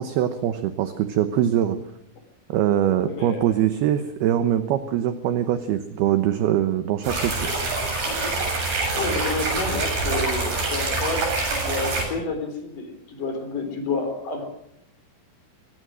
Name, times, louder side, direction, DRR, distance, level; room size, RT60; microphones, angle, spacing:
voice 1, 0.0-1.8 2.5-7.3, right 11 dB, 75° right, 9 dB, 2.5 m, -22 dB
voice 2, 3.0-3.6 8.9-14.5, left 3 dB, 45° left, 7 dB, 4.8 m, -30 dB
sound 1, 7.0-12.1, right 3 dB, 55° right, 9.7 m, -25 dB
24.0 x 18.5 x 6.3 m, 0.78 s
omnidirectional pair, 5.7 m